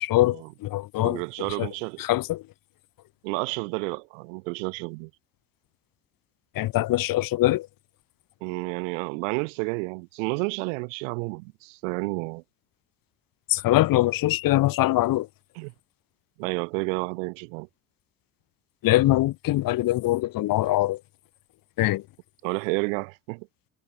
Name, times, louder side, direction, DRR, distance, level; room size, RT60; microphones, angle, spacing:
voice 1, 0.0-1.2 1.6-1.7 2.0-2.4 6.5-7.7 13.5-15.3 18.8-21.0 21.8-22.0, left 16 dB, 65° left, 1.5 m, -23 dB
voice 2, 1.0-2.0 3.2-5.1 8.4-12.4 15.6-15.7 16.4-17.7 22.4-23.5, right 32 dB, 85° right, 4.4 m, -30 dB
supercardioid pair, 65°, 37 cm